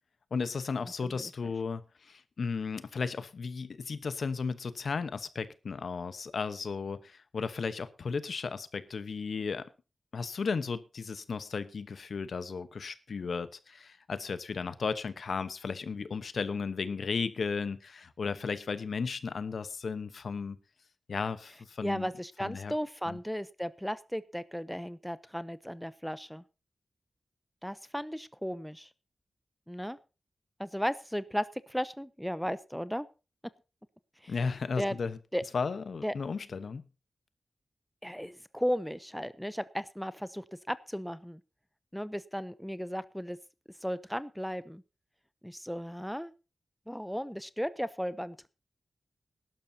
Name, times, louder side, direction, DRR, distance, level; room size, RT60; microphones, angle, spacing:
voice 1, 0.3-9.7 10.1-20.6 21.1-22.1 22.4-22.7 23.1-23.2 34.3-35.2 35.5-36.8, left 5 dB, 70° left, 13 dB, 1.0 m, -35 dB
voice 2, 21.8-26.4 27.6-28.9 29.7-30.0 30.6-33.1 34.2-34.3 34.8-35.0 35.3-35.4 36.0-36.1 38.0-41.4 41.9-43.4 43.8-44.8 45.4-46.3 46.9-48.5, equal, ahead, 15 dB, 0.6 m, -35 dB
19.0 x 12.0 x 2.8 m, 0.31 s
wide cardioid pair, 120°, 0 cm